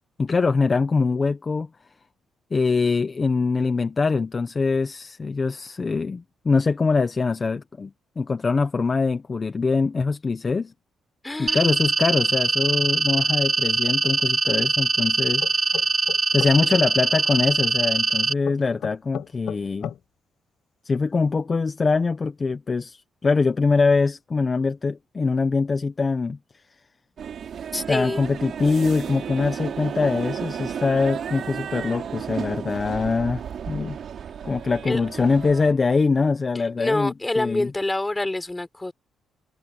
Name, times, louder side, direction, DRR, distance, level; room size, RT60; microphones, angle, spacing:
voice 1, 0.2-1.7 2.5-10.7 11.4-15.4 16.3-19.9 20.8-26.4 27.9-34.0 34.4-37.7, left 4 dB, 30° left, 1.2 m, -23 dB
voice 2, 11.2-11.6 27.7-28.2 34.9-35.0 36.8-38.9, left 2 dB, 15° left, 4.0 m, -26 dB
sound 1, 11.5-18.3, right 3 dB, 25° right, 1.0 m, -22 dB
sound 2, 15.4-16.9 18.4-20.0, left 10 dB, 70° left, 7.8 m, -34 dB
sound 3, 27.2-35.7, right 8 dB, 60° right, 3.8 m, -33 dB
cardioid pair, 90°, 0 cm